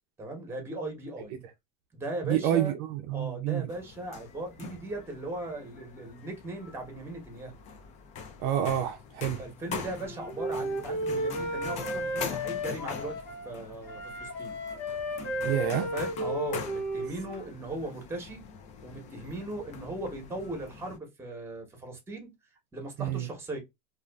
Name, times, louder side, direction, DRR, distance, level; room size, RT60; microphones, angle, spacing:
voice 1, 0.2-1.4 1.9-2.7 3.1-7.5 9.4-13.1 13.4-14.5 15.7-18.4 18.8-22.3 22.7-23.6, right 2 dB, 10° right, 1.0 m, -38 dB
voice 2, 2.2-3.7 8.4-9.4 15.4-15.9 23.0-23.3, right 11 dB, 55° right, 0.5 m, -28 dB
sound 1, 3.7-21.0, left 6 dB, 35° left, 0.4 m, -43 dB
Wind instrument woodwind instrument, 9.9-13.5 13.9-17.5, equal, 85° left, 1.0 m, -34 dB
2.4 x 2.4 x 2.2 m
supercardioid pair, 125°, 21 cm